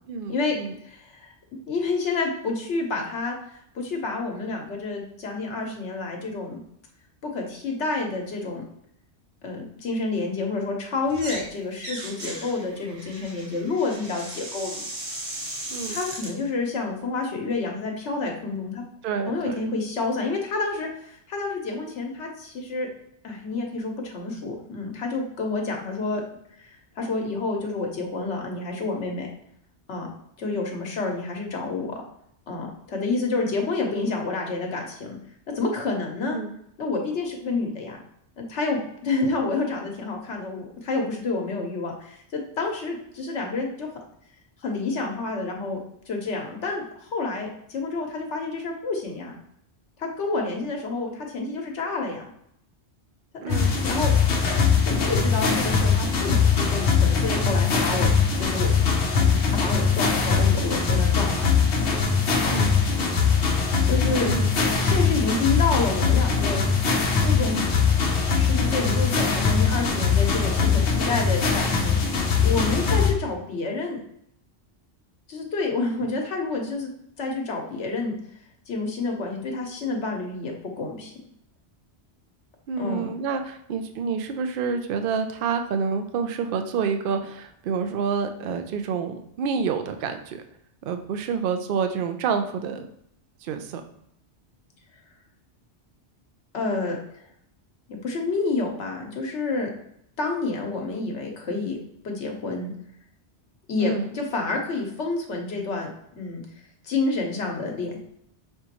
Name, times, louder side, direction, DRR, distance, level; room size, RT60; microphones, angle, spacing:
voice 1, 0.1-0.8 15.7-16.0 19.0-19.6 36.2-36.5 53.4-53.7 62.5-62.7 64.2-64.6 82.7-90.4 90.8-92.9 93.4-93.8 103.8-104.1, right 6 dB, 60° right, 7 dB, 0.6 m, -28 dB
voice 2, 0.8-6.6 7.2-8.6 9.4-14.9 15.9-18.8 19.3-22.9 23.2-26.2 26.6-29.3 29.9-30.1 30.4-31.9 32.5-35.2 35.5-36.4 36.8-38.0 38.4-43.9 44.6-45.8 46.1-49.4 50.0-52.3 53.5-54.1 54.9-58.1 58.4-58.7 59.1-61.5 62.4-62.6 63.8-64.3 64.8-66.6 67.2-67.7 68.4-72.0 72.4-74.0 75.3-76.9 77.2-78.1 78.7-81.1 82.8-83.1 96.5-97.0 97.9-99.7 100.2-101.8 102.0-102.7 103.7-105.9 106.2-106.4 106.8-108.0, left 3 dB, 90° left, 1 dB, 1.2 m, -29 dB
sound 1, 11.1-11.5 11.8-16.3, right 1 dB, 45° right, 1.0 m, -36 dB
sound 2, 53.5-73.1, left 5 dB, 60° left, 0.9 m, -21 dB
5.4 x 2.9 x 2.9 m, 0.74 s
omnidirectional pair, 1.2 m